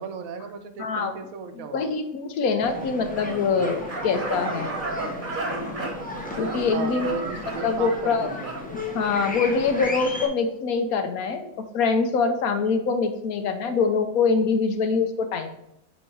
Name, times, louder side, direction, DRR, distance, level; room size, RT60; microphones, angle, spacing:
voice 1, 0.0-1.9 2.7-2.9 6.7-8.5, right 6 dB, 75° right, 8 dB, 1.1 m, -36 dB
voice 2, 0.8-1.1 1.5-4.8 6.4-7.1 7.6-8.3 8.9-15.5, left 5 dB, 75° left, 7 dB, 1.1 m, -24 dB
sound 1, 2.6-10.3, left 2 dB, 10° left, 0.6 m, -35 dB
sound 2, 3.1-9.2, right 3 dB, 35° right, 1.0 m, -34 dB
8.2 x 2.8 x 4.5 m, 0.81 s
omnidirectional pair, 1.6 m